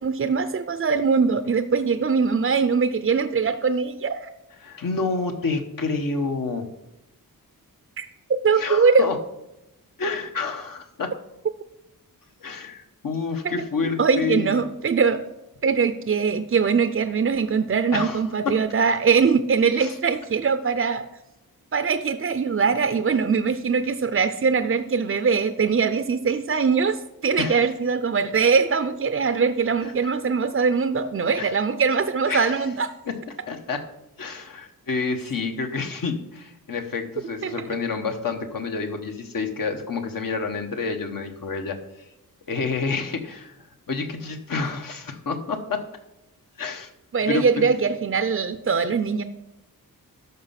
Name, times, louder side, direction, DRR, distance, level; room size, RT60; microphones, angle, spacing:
voice 1, 0.0-4.3 8.0-8.1 8.4-9.1 13.4-13.6 14.0-15.2 15.6-21.1 21.7-32.9 37.4-37.7 47.1-49.2, right 5 dB, 35° right, 10 dB, 0.5 m, -22 dB
voice 2, 4.6-6.7 8.6-9.2 10.0-11.1 12.4-14.6 17.9-18.6 19.8-19.9 27.4-27.6 29.8-29.9 31.3-31.5 32.3-32.6 33.1-33.2 33.5-33.9 34.2-41.8 42.5-43.5 43.9-45.8 46.6-46.9 47.3-47.7, left 4 dB, 65° left, 5 dB, 1.4 m, -28 dB
12.5 x 5.5 x 5.8 m, 0.91 s
wide cardioid pair, 120°, 36 cm